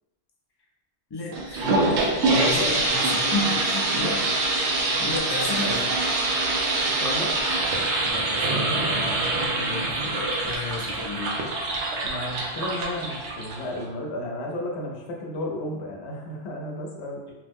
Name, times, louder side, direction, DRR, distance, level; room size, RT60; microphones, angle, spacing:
voice 1, 1.1-4.2 5.0-5.9 8.0-9.2 9.6-11.4, left 2 dB, 35° left, -3 dB, 0.4 m, -32 dB
sound 1, 1.3-13.8, right 2 dB, 85° right, 0.9 m, -25 dB
voice 2, 2.2-2.9 3.9-4.2 6.9-7.4 9.1-9.8 12.0-17.3, left 1 dB, 75° left, 0 dB, 0.9 m, -33 dB
2.9 x 2.0 x 3.5 m, 1.1 s
omnidirectional pair, 1.1 m